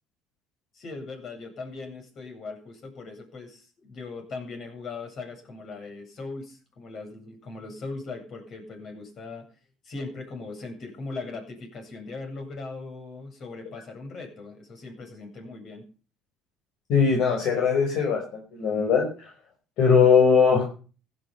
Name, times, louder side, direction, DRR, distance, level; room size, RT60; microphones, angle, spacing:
voice 1, 0.7-9.4 9.8-15.8, left 3 dB, 50° left, 5 dB, 7.8 m, -39 dB
voice 2, 16.9-18.2 18.5-19.3 19.8-20.6, left 6 dB, 65° left, 1 dB, 5.4 m, -20 dB
16.0 x 11.5 x 5.8 m, 0.38 s
supercardioid pair, 75°, 0 cm